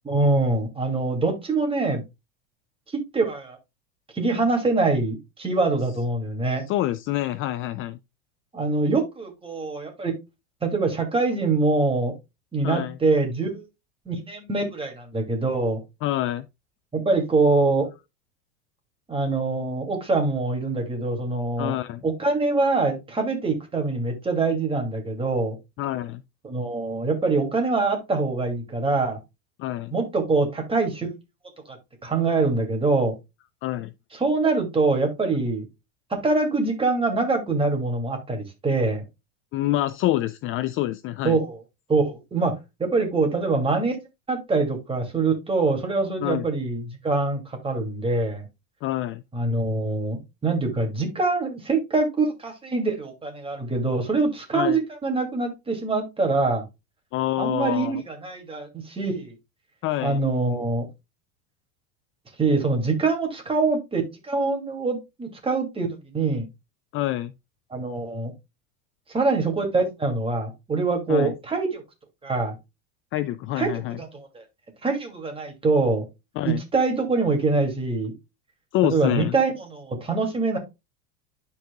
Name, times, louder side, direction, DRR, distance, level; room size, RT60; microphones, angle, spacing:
voice 1, 0.0-2.0 2.9-3.6 4.1-6.6 8.5-10.1 10.6-12.1 12.5-13.6 14.1-15.8 16.9-17.9 19.1-21.8 22.0-25.6 26.4-29.2 29.9-31.1 31.7-31.8 32.0-33.1 34.1-35.7 36.1-39.0 41.2-41.6 41.9-44.0 44.3-48.5 49.3-56.6 57.4-59.4 60.0-60.9 62.4-66.5 67.7-68.3 69.1-71.8 72.2-72.6 73.6-74.4 74.8-76.1 76.4-78.1 78.8-80.6, right 3 dB, 15° right, 2.5 m, -24 dB
voice 2, 6.7-8.0 12.6-13.0 16.0-16.5 21.6-22.0 25.8-26.2 29.6-29.9 33.6-33.9 39.5-41.4 46.2-46.4 48.8-49.2 54.5-54.8 57.1-58.0 59.8-60.2 66.9-67.3 71.1-71.3 73.1-74.0 76.4-76.6 78.7-79.4, left 14 dB, 35° left, 0.4 m, -26 dB
11.5 x 4.8 x 2.3 m
supercardioid pair, 125°, 36 cm